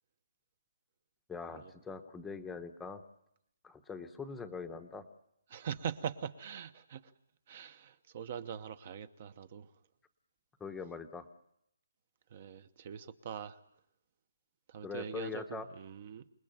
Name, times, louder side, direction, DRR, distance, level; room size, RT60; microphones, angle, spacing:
voice 1, 1.3-3.0 3.6-5.0 10.6-11.2 14.8-15.7, left 5 dB, 5° left, 6 dB, 1.0 m, -42 dB
voice 2, 5.5-7.1 7.5-9.7 12.3-13.6 14.7-16.2, right 8 dB, 30° right, 14 dB, 1.0 m, -42 dB
28.0 x 20.0 x 9.1 m, 0.79 s
hypercardioid pair, 175°, 0 cm